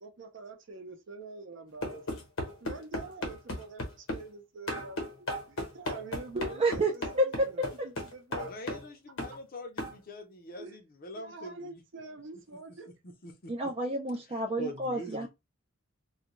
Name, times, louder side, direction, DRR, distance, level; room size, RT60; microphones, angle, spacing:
voice 1, 0.0-2.3 2.6-8.5 10.5-10.8 11.1-12.9 15.0-15.1, right 3 dB, 60° right, 0.7 m, -46 dB
sound 1, 1.8-4.3 4.7-8.9 9.2-9.4 9.8-10.0, left 1 dB, 75° left, 1.0 m, -35 dB
voice 2, 6.4-7.5 13.5-15.3, right 1 dB, 30° right, 0.3 m, -30 dB
voice 3, 8.3-11.8 13.0-13.5 14.3-15.3, equal, 45° left, 0.6 m, -44 dB
2.4 x 2.2 x 3.0 m
head